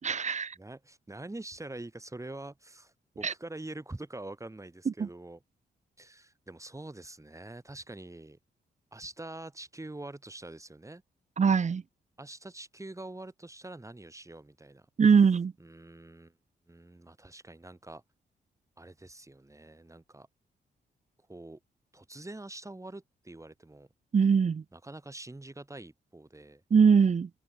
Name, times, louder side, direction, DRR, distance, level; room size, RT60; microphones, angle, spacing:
voice 1, 0.0-0.5 3.2-3.3 5.0-5.1 11.4-11.8 15.0-15.5 24.1-24.6 26.7-27.3, right 6 dB, 40° right, 0.8 m, -22 dB
voice 2, 0.6-5.4 6.0-8.4 8.9-11.0 12.2-14.9 15.6-16.3 16.7-18.0 18.8-20.3 21.3-21.6 21.9-23.9 24.7-26.6, right 2 dB, 15° right, 3.7 m, -45 dB
cardioid pair, 60°, 18 cm